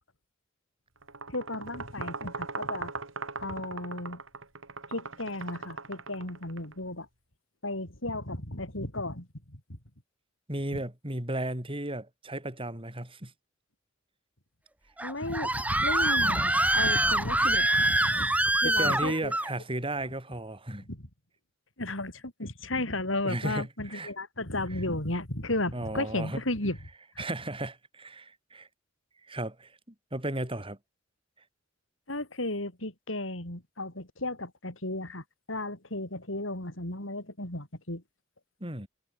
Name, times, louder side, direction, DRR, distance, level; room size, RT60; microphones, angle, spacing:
sound 1, 1.0-6.7, right 4 dB, 85° right, 6.3 m, -39 dB
voice 1, 1.3-2.9 3.4-4.2 4.9-7.1 7.6-9.8 15.0-19.3 20.9-21.0 21.8-26.8 27.1-27.2 32.1-38.0, left 2 dB, 75° left, 6.6 m, -34 dB
voice 2, 10.5-13.3 18.6-20.9 23.2-24.1 24.7-24.8 25.7-26.4 27.2-28.7 29.2-30.8 38.6-38.9, right 1 dB, 25° right, 5.9 m, -35 dB
Screaming, 15.0-19.5, right 1 dB, 10° right, 1.7 m, -25 dB
head